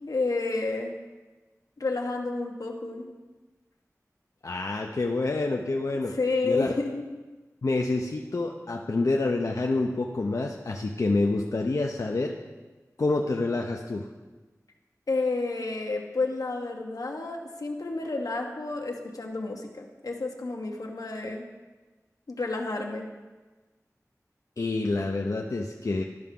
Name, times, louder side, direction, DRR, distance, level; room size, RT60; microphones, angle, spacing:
voice 1, 0.1-0.9 1.8-3.1 6.2-7.0 15.1-21.5 22.3-23.1, left 3 dB, 85° left, 1 dB, 1.0 m, -30 dB
voice 2, 4.4-6.2 6.4-6.7 7.6-12.3 13.0-14.1 24.6-26.0, left 2 dB, 65° left, 1 dB, 0.6 m, -27 dB
12.5 x 5.6 x 3.7 m, 1.2 s
wide cardioid pair, 65°, 6 cm